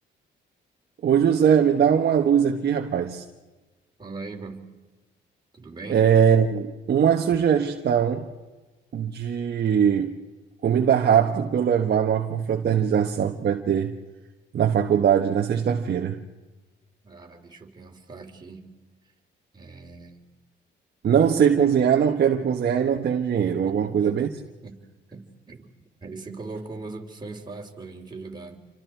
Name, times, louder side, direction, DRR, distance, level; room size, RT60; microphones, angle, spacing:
voice 1, 1.0-3.2 5.9-8.3 8.9-10.1 10.6-13.9 14.5-16.2 21.0-24.3, right 8 dB, 55° right, 1.3 m, -21 dB
voice 2, 4.0-4.7 5.5-6.0 17.0-18.7 19.5-20.2 23.7-24.3 24.6-24.8 25.1-25.6 26.0-28.6, right 3 dB, 20° right, 3.6 m, -40 dB
28.0 x 25.0 x 4.6 m
cardioid pair, 90°, 20 cm